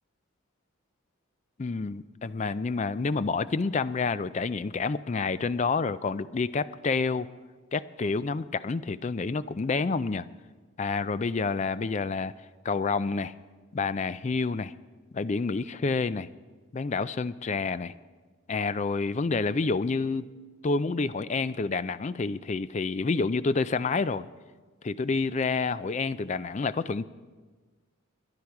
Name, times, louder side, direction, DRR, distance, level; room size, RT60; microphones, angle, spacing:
voice 1, 1.6-7.3 7.7-10.3 10.8-12.3 12.6-13.3 13.7-14.7 15.1-16.3 16.7-17.9 18.5-20.3 20.6-24.3 24.8-27.0, left 4 dB, 30° left, 15 dB, 0.3 m, -28 dB
22.5 x 10.0 x 4.7 m, 1.4 s
head